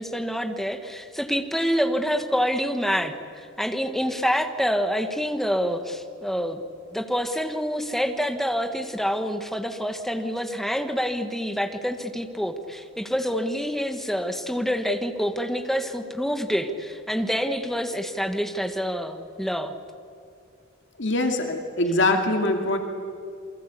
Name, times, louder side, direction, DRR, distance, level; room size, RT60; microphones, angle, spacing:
voice 1, 0.0-6.6 6.9-19.7, equal, ahead, 6 dB, 1.5 m, -27 dB
voice 2, 21.0-22.8, left 2 dB, 60° left, 4 dB, 2.4 m, -23 dB
28.0 x 23.5 x 8.4 m, 2.4 s
head